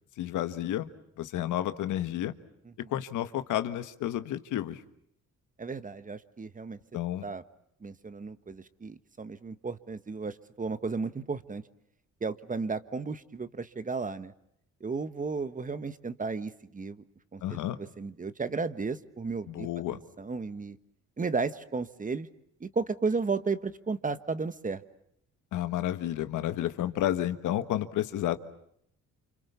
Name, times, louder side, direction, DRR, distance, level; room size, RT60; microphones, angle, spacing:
voice 1, 0.2-0.9 1.2-2.3 2.9-4.8 6.9-7.3 17.4-17.8 19.5-20.0 25.5-28.4, left 12 dB, 85° left, 10 dB, 1.6 m, -31 dB
voice 2, 5.6-6.8 7.2-7.4 7.8-11.6 12.2-14.3 14.8-17.0 17.3-20.8 21.2-22.3 22.6-24.8, right 4 dB, 25° right, 12 dB, 1.4 m, -34 dB
29.0 x 26.5 x 7.0 m, 0.72 s
cardioid pair, 90°, 30 cm